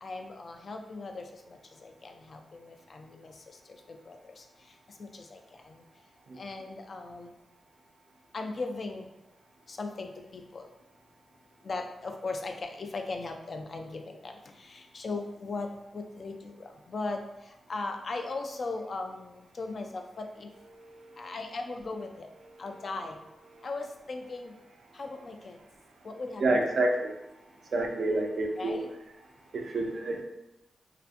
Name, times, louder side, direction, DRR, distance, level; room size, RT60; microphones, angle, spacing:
voice 1, 0.0-3.3 3.7-4.4 5.0-5.4 5.6-5.8 6.4-7.3 8.3-9.1 9.7-10.7 11.6-17.2 17.7-20.5 21.2-22.3 22.6-23.2 23.6-24.5 24.9-25.6 26.0-26.6 28.6-28.9, left 3 dB, 55° left, 4 dB, 0.3 m, -38 dB
voice 2, 26.4-27.1 27.7-28.8 29.5-30.2, right 2 dB, 70° right, 2 dB, 0.4 m, -28 dB
2.5 x 2.4 x 2.4 m, 0.95 s
cardioid pair, 85°, 0 cm